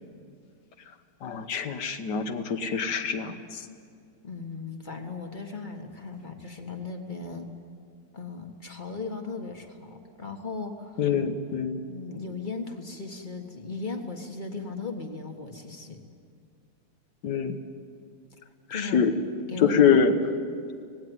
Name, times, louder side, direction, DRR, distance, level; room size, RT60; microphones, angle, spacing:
voice 1, 1.2-3.7 11.0-11.8 17.2-17.6 18.7-19.1 19.6-20.1, left 6 dB, 75° left, 8 dB, 1.7 m, -24 dB
voice 2, 4.2-7.5 8.1-11.1 11.9-16.0 18.7-19.1 19.5-20.0, left 4 dB, 30° left, 4 dB, 1.6 m, -37 dB
18.5 x 17.0 x 9.4 m, 2.3 s
omnidirectional pair, 1.9 m